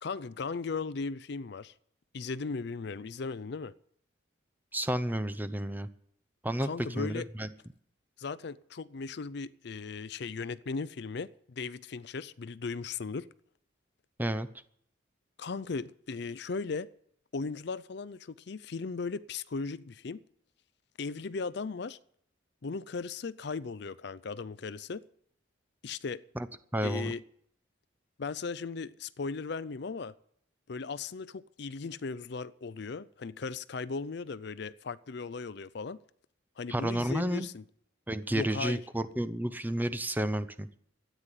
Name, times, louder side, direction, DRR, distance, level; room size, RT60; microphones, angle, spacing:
voice 1, 0.0-1.7 2.1-3.7 6.6-7.3 8.2-13.3 15.4-16.9 17.3-20.2 21.0-22.0 22.6-25.0 25.8-26.2 26.8-27.2 28.2-30.1 30.7-36.0 36.6-37.6 38.3-38.8, left 4 dB, 55° left, 0.5 m, -37 dB
voice 2, 4.7-5.9 6.4-7.5 14.2-14.5 26.4-26.5 26.7-27.1 36.7-37.5 38.1-40.7, right 1 dB, 10° right, 0.7 m, -31 dB
13.5 x 9.3 x 9.8 m
head